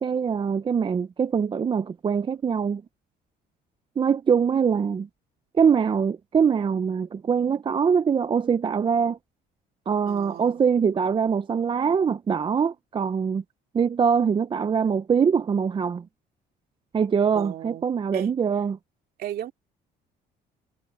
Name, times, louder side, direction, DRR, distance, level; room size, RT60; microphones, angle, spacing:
voice 1, 0.0-2.8 4.0-5.1 5.6-9.2 9.9-13.4 13.7-16.0 16.9-18.8, right 6 dB, 30° right, 0.6 m, -23 dB
voice 2, 10.1-10.6 17.3-17.9 18.1-18.3 19.2-19.5, right 12 dB, 65° right, 2.6 m, -35 dB
cardioid pair, 110°, 17 cm